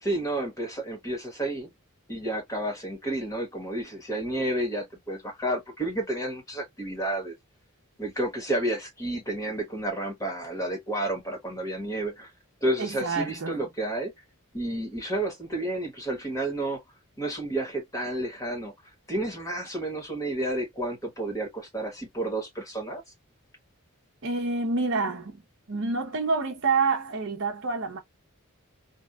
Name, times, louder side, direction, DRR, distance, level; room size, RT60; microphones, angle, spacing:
voice 1, 0.0-1.7 2.1-7.3 8.0-12.3 12.6-14.1 14.5-16.8 17.2-18.7 19.1-23.0, right 1 dB, 15° left, 1.2 m, -31 dB
voice 2, 12.8-13.6 24.2-25.4 25.7-28.0, right 4 dB, 55° right, 0.7 m, -27 dB
2.8 x 2.3 x 2.3 m
head